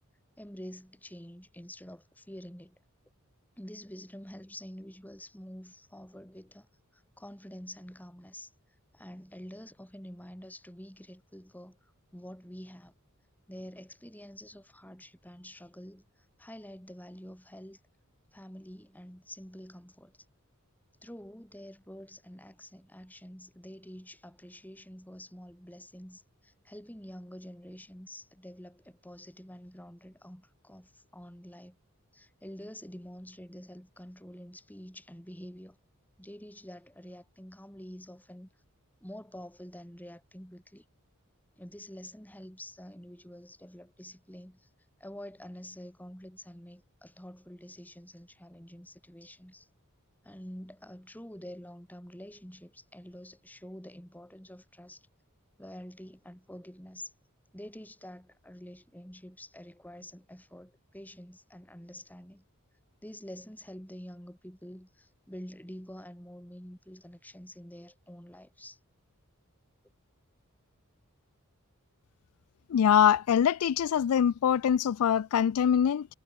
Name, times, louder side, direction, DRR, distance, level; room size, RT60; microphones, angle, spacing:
voice 1, 0.4-2.8 3.6-6.7 6.9-8.5 8.9-12.9 13.5-16.1 16.4-17.8 18.3-20.2 21.0-31.8 32.1-35.8 36.2-38.5 39.0-40.8 41.6-44.7 45.0-49.7 50.2-55.1 55.6-57.1 57.5-62.4 63.0-68.8, equal, 10° left, 5.8 m, -47 dB
voice 2, 72.7-76.1, left 8 dB, 80° left, 0.4 m, -24 dB
head